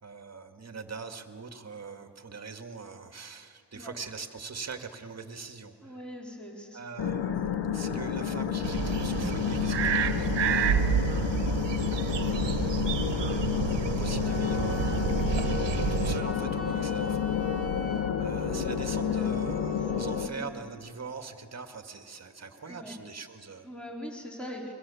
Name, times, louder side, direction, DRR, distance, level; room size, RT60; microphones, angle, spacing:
voice 1, 0.0-6.0 6.7-11.2 11.8-12.6 13.6-15.4 15.9-17.3 18.2-23.7, right 4 dB, 35° right, 6 dB, 2.0 m, -42 dB
voice 2, 5.8-6.8 13.2-13.4 18.4-20.6 22.7-23.0 23.6-24.7, equal, ahead, -2 dB, 4.2 m, -43 dB
sound 1, 7.0-20.3, left 8 dB, 75° left, 1.5 m, -30 dB
sound 2, 8.6-16.2, right 8 dB, 75° right, 1.5 m, -29 dB
Wind instrument woodwind instrument, 14.2-20.3, left 4 dB, 35° left, 2.0 m, -41 dB
29.5 x 23.0 x 7.1 m, 2.3 s
cardioid pair, 100°, 43 cm